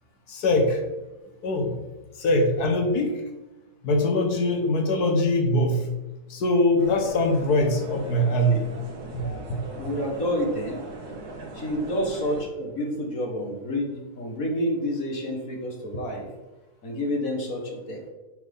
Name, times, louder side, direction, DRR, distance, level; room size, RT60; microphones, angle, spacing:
voice 1, 0.3-0.8 1.4-1.8 2.2-3.2 3.8-5.9 6.3-8.7 9.1-9.6, left 1 dB, 80° left, 4 dB, 1.7 m, -22 dB
sound 1, 6.8-12.4, right 2 dB, 85° right, 1.9 m, -39 dB
voice 2, 9.8-10.8 11.5-16.3 16.8-18.1, equal, 60° left, 1 dB, 1.9 m, -29 dB
7.9 x 4.3 x 5.4 m, 1.0 s
omnidirectional pair, 1.7 m